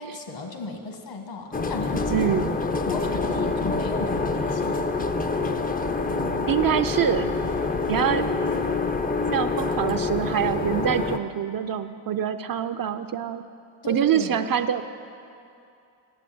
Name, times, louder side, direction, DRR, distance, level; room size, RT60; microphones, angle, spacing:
voice 1, 0.0-2.3 2.8-4.8 13.8-14.4, left 3 dB, 65° left, 4 dB, 1.7 m, -34 dB
sound 1, 1.5-11.2, left 3 dB, 20° left, 0.5 m, -26 dB
voice 2, 2.1-2.5 6.5-7.3 7.9-8.2 9.3-13.4 13.9-14.8, right 9 dB, 45° right, 9 dB, 0.5 m, -25 dB
9.1 x 7.9 x 7.7 m, 2.6 s
cardioid pair, 65°, 48 cm